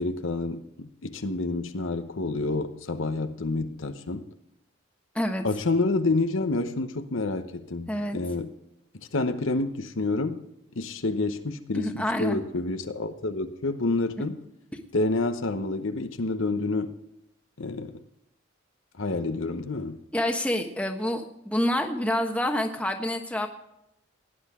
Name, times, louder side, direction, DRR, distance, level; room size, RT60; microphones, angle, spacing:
voice 1, 0.0-4.3 5.4-8.5 8.9-10.4 10.8-14.4 14.9-16.9 17.6-18.0 19.0-20.0, left 2 dB, 75° left, 0.9 m, -28 dB
voice 2, 5.1-5.4 7.9-8.2 11.7-12.4 20.1-23.5, left 1 dB, 5° left, 1.2 m, -27 dB
17.5 x 10.5 x 3.7 m
head